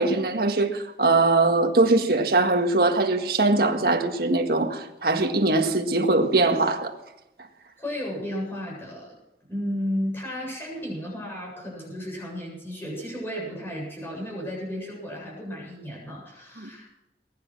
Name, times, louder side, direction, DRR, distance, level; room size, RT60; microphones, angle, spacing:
voice 1, 0.0-6.9 16.6-16.7, right 2 dB, 60° right, 1.8 m, -22 dB
voice 2, 7.8-9.1 9.5-17.0, equal, 15° left, 7.8 m, -33 dB
21.5 x 10.5 x 6.2 m
head